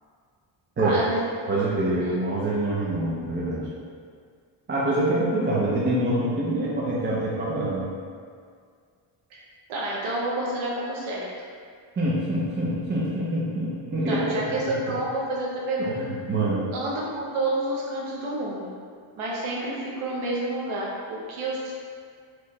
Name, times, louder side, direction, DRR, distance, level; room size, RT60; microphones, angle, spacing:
voice 1, 0.8-1.2 9.3-9.4 9.7-11.3 14.1-16.0 16.7-18.7 19.2-21.7, right 1 dB, 75° right, -4 dB, 0.8 m, -29 dB
voice 2, 1.5-3.7 4.7-7.9 12.0-14.4 15.8-16.7, right 1 dB, 25° right, -6 dB, 0.5 m, -25 dB
4.5 x 3.1 x 3.1 m, 2.1 s
wide cardioid pair, 160°, 49 cm